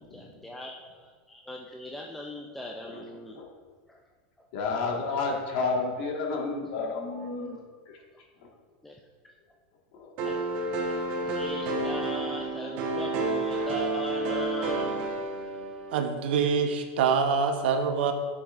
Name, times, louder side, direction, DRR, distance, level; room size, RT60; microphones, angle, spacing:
voice 1, 0.1-3.4 3.9-4.0 4.4-4.5 7.5-7.6 8.8-9.0 9.2-9.3 10.2-10.4 10.9-15.0, left 1 dB, 5° left, 0 dB, 0.3 m, -40 dB
voice 2, 4.5-7.6 9.9-10.1, left 4 dB, 55° left, -1 dB, 1.6 m, -30 dB
sound 1, 10.2-16.1, right 2 dB, 35° right, 1.0 m, -30 dB
voice 3, 15.9-18.1, right 6 dB, 70° right, 6 dB, 0.8 m, -25 dB
10.0 x 6.2 x 2.5 m, 1.5 s
supercardioid pair, 165°, 6 cm